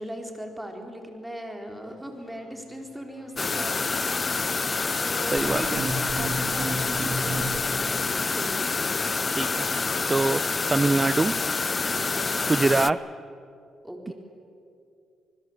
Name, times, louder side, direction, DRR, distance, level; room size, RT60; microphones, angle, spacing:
voice 1, 0.0-8.7 11.9-12.4 13.8-14.1, equal, 5° right, 3 dB, 4.3 m, -39 dB
sound 1, 1.9-2.0 2.2-6.8 7.2-10.1, left 7 dB, 65° left, 3.2 m, -45 dB
sound 2, 3.4-12.9, left 4 dB, 30° left, 0.6 m, -27 dB
voice 2, 5.3-5.8 9.3-9.7 10.1-10.4 10.7-11.3 12.5-13.0, right 3 dB, 20° right, 15 dB, 0.6 m, -23 dB
sound 3, 5.4-8.1, right 2 dB, 45° right, 2.8 m, -33 dB
27.0 x 20.5 x 8.1 m, 2.5 s
cardioid pair, 90°, 0 cm